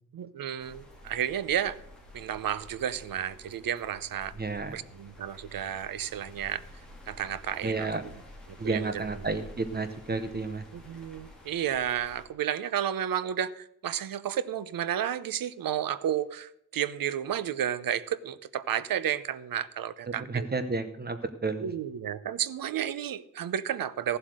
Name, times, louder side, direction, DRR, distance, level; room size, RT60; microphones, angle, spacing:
voice 1, 0.1-1.8 2.1-4.3 4.7-6.6 7.1-8.1 8.5-9.1 10.7-20.5 21.6-24.2, right 10 dB, 85° right, 16 dB, 0.7 m, -32 dB
sound 1, 0.6-12.3, left 1 dB, ahead, 2.6 m, -50 dB
voice 2, 4.4-4.8 7.6-8.0 8.6-10.7 20.3-21.6, right 3 dB, 30° right, 9 dB, 0.8 m, -31 dB
14.5 x 7.8 x 6.4 m, 0.75 s
wide cardioid pair, 180°, 33 cm